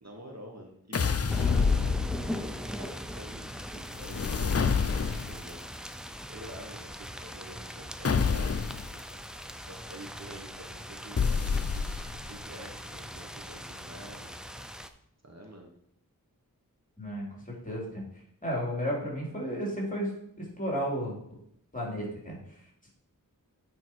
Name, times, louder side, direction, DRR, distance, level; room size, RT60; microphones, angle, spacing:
voice 1, 0.0-5.6 6.3-8.6 8.9-9.0 9.5-14.3 15.2-15.7, right 1 dB, 45° right, 1 dB, 1.5 m, -48 dB
sound 1, 0.9-2.5 4.0-5.5 8.0-8.9 11.2-12.3, left 5 dB, 45° left, 0.5 m, -27 dB
sound 2, 1.3-14.9, equal, ahead, 0.6 m, -40 dB
voice 2, 17.0-18.0 18.4-20.1 20.4-21.2 21.7-22.4, equal, 20° left, -3 dB, 3.5 m, -33 dB
8.8 x 5.3 x 4.6 m, 0.71 s
wide cardioid pair, 55°, 35 cm